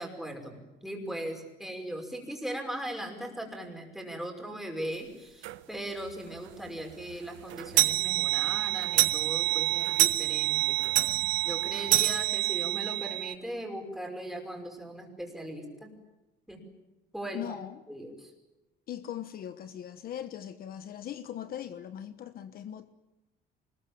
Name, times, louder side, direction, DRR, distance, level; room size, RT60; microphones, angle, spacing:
voice 1, 0.0-10.8 11.4-15.9 16.5-16.6 17.1-17.6 17.9-18.3, right 1 dB, ahead, 5.6 m, -39 dB
sound 1, 5.4-5.6 6.1-6.2 6.5-6.6 6.9-13.3, right 18 dB, 90° right, 1.3 m, -27 dB
voice 2, 17.3-17.8 18.9-22.9, left 10 dB, 50° left, 1.2 m, -40 dB
26.0 x 21.5 x 8.9 m
cardioid pair, 150°, 19 cm